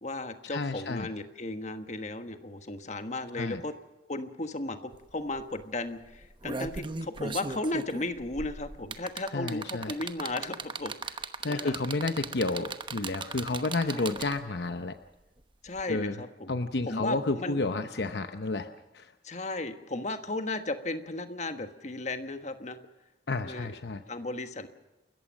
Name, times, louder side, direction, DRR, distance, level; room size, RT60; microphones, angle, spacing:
voice 1, 0.0-3.7 4.1-11.7 13.8-14.1 15.6-16.5 16.9-17.6 19.2-22.8 23.4-23.7 24.1-24.7, left 2 dB, 40° left, 8 dB, 1.4 m, -35 dB
voice 2, 0.5-1.1 3.4-3.6 9.3-9.9 11.4-15.0 15.9-16.2 16.5-19.1 23.3-24.0, left 3 dB, 65° left, 9 dB, 0.8 m, -31 dB
sound 1, 4.9-5.0 5.3-5.6 6.1-14.6 15.8-15.9, right 4 dB, 25° right, 1.0 m, -37 dB
29.0 x 14.5 x 6.3 m, 1.1 s
head